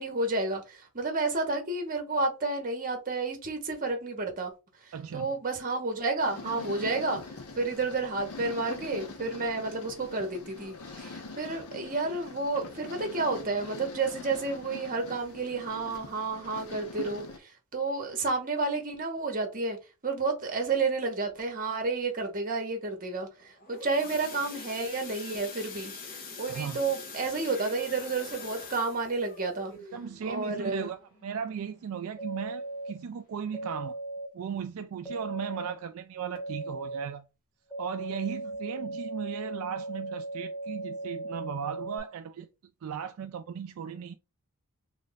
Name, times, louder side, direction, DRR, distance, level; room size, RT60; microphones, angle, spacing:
voice 1, 0.0-4.5 5.1-7.2 7.6-17.2 17.7-19.8 20.0-23.3 23.7-25.9 26.4-29.7 30.2-30.9, right 3 dB, 40° right, 1.0 m, -30 dB
voice 2, 4.9-5.3 26.5-26.8 29.9-34.0 34.3-37.2 37.8-42.5 42.8-44.2, right 7 dB, 65° right, 0.3 m, -36 dB
sound 1, 6.2-17.4, left 3 dB, 75° left, 0.8 m, -43 dB
sound 2, 23.4-32.1 32.5-32.7 33.0-33.1 33.6-33.7, left 4 dB, 40° left, 0.8 m, -45 dB
sound 3, 32.2-32.9 33.5-34.3 35.0-35.7 36.3-37.0 37.7-42.0, right 2 dB, 5° left, 0.7 m, -37 dB
3.2 x 2.5 x 3.9 m
head